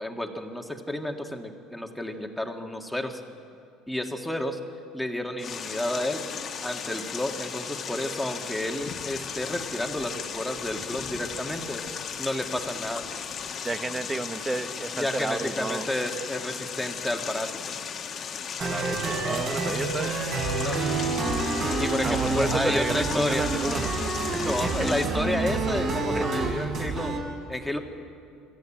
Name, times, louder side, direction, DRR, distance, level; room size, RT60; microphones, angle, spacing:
voice 1, 0.0-3.2 3.9-4.6 4.9-6.2 6.6-11.8 12.2-13.1 14.9-17.5 20.6-20.8 21.8-23.5 24.4-27.2 27.5-27.8, left 1 dB, 5° left, 3 dB, 1.8 m, -31 dB
sound 1, 5.4-25.1, left 7 dB, 40° left, 1.4 m, -36 dB
voice 2, 13.6-15.9 18.6-20.1 22.0-23.9 24.3-24.5 24.8-24.9 26.1-26.3, right 2 dB, 15° right, 10 dB, 0.9 m, -31 dB
sound 2, 18.6-27.2, right 3 dB, 45° right, 5.3 m, -28 dB
25.5 x 14.5 x 8.9 m, 2.5 s
cardioid pair, 125°, 0 cm